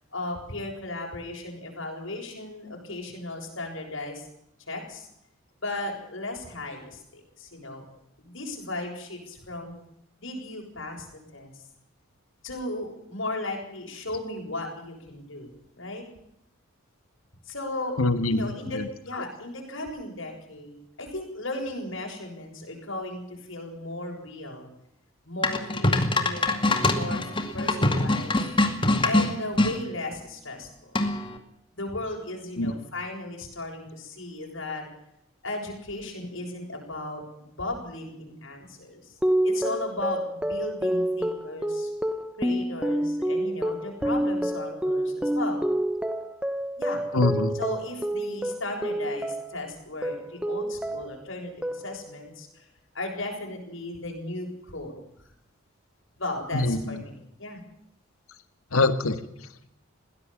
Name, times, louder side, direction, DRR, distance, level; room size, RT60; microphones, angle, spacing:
voice 1, 0.1-4.3 4.7-5.1 5.6-7.9 8.2-9.8 10.2-11.1 11.3-11.5 12.4-15.5 15.7-16.0 17.5-18.0 18.3-24.7 25.2-27.3 27.5-28.4 29.0-31.0 31.7-34.9 35.4-39.1 39.4-41.9 42.4-45.6 46.8-47.0 47.6-52.7 52.9-55.0 56.2-57.6, left 2 dB, 60° left, 1 dB, 7.3 m, -36 dB
voice 2, 18.0-18.9 32.6-32.7 47.1-47.6 56.5-57.0 58.7-59.7, left 2 dB, 80° left, 11 dB, 1.8 m, -25 dB
sound 1, 25.4-29.7 30.9-31.4, left 2 dB, 25° left, 2.2 m, -23 dB
sound 2, 39.2-49.7 50.0-51.3 51.6-52.2, right 1 dB, 5° right, 1.0 m, -28 dB
21.5 x 16.5 x 7.4 m, 0.77 s
head